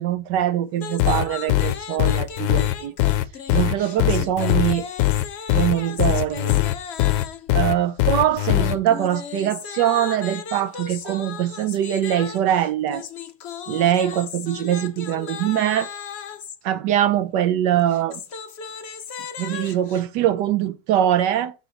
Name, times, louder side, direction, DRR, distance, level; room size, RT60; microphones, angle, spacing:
voice 1, 0.0-2.9 3.5-4.9 5.5-6.6 7.5-13.0 13.7-15.9 16.6-18.2 19.4-21.5, right 11 dB, 75° right, 1.2 m, -22 dB
sound 1, 0.8-7.5 8.5-16.6 17.8-20.0, left 7 dB, 65° left, 0.6 m, -36 dB
sound 2, 1.0-8.8, left 15 dB, 85° left, 1.3 m, -20 dB
7.8 x 4.2 x 4.0 m
omnidirectional pair, 2.0 m